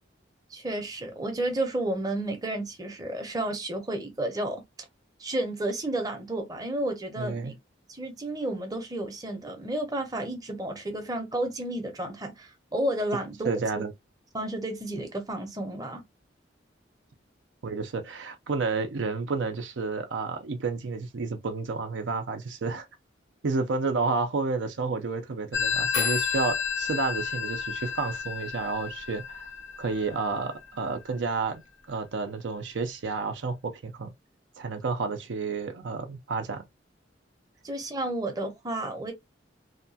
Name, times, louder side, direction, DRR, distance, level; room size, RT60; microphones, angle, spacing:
voice 1, 0.5-4.6 5.2-7.5 7.9-13.5 14.3-16.0 37.6-39.1, right 1 dB, 20° right, 0.7 m, -31 dB
voice 2, 7.2-7.5 13.4-13.9 17.6-22.9 23.4-29.5 29.8-31.6 31.9-34.1 34.6-36.6, right 4 dB, 75° right, 0.5 m, -30 dB
Telephone, 25.5-30.9, left 6 dB, 85° left, 0.8 m, -31 dB
2.8 x 2.2 x 2.7 m
head